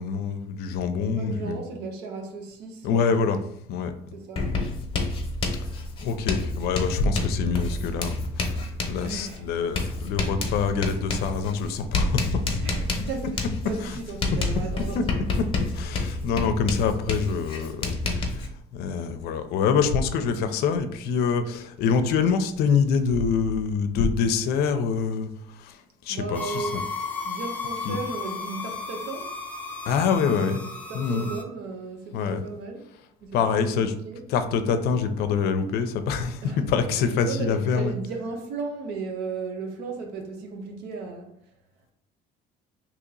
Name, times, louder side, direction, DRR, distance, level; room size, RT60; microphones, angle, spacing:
voice 1, 0.0-1.6 2.8-3.4 3.7-3.9 5.7-8.6 8.9-12.4 13.8-13.9 14.9-15.0 15.8-18.5 18.7-25.3 25.6-25.8 26.1-26.8 27.9-28.0 29.9-30.6 30.9-31.3 32.1-32.4 33.3-33.9 34.3-36.4 36.7-37.9, left 6 dB, 70° left, 0.5 m, -25 dB
voice 2, 1.1-3.4 4.1-4.7 9.0-9.4 12.6-15.1 26.1-26.9 27.2-29.3 30.4-30.6 30.9-32.8 33.2-33.4 33.7-34.2 36.4-36.6 36.9-41.3, right 4 dB, 85° right, 0.8 m, -35 dB
Writing, 4.4-18.5, left 2 dB, 35° left, 0.9 m, -29 dB
sound 1, 26.3-31.4, left 4 dB, 10° left, 0.7 m, -34 dB
2.9 x 2.8 x 3.8 m
cardioid pair, 105°, 17 cm